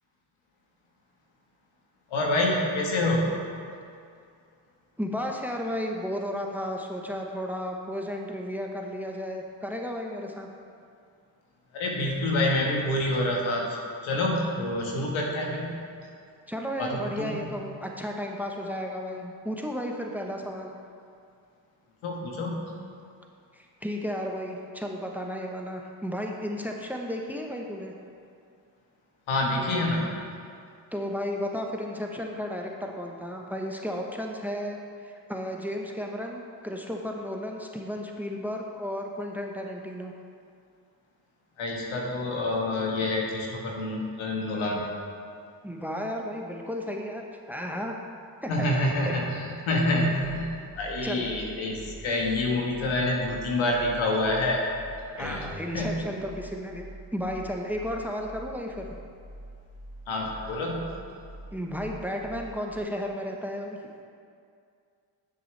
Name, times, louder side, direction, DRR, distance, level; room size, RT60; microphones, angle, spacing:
voice 1, 2.1-3.3 11.7-16.1 16.8-17.5 22.0-22.8 29.3-30.1 41.6-44.9 48.5-54.6 55.2-55.5 55.7-55.9 60.1-60.9, left 1 dB, 80° left, -1 dB, 1.5 m, -27 dB
voice 2, 5.0-10.5 16.5-20.7 23.5-27.9 30.9-34.8 35.0-40.1 45.6-47.9 48.4-48.7 49.0-49.1 51.0-51.3 55.1-56.8 57.1-58.9 61.5-63.8, equal, 5° right, 1 dB, 1.1 m, -33 dB
sound 1, 50.6-62.8, right 1 dB, 25° right, 2.1 m, -46 dB
9.8 x 7.8 x 3.3 m, 2.3 s
supercardioid pair, 50°, 48 cm